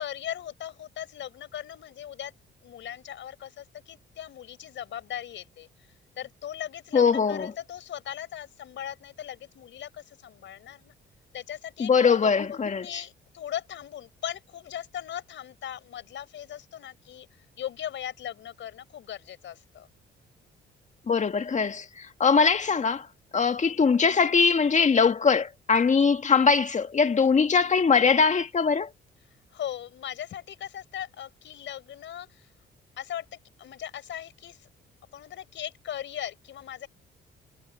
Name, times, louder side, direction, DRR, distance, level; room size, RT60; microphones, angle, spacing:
voice 1, 0.0-2.3 2.6-5.7 6.2-10.9 11.3-19.9 29.5-32.5 33.0-34.7 35.1-36.9, left 10 dB, 70° left, 5.0 m, -38 dB
voice 2, 6.9-7.5 11.8-12.9 21.1-23.1 23.3-28.9, left 5 dB, 35° left, 2.0 m, -22 dB
cardioid pair, 90°, 20 cm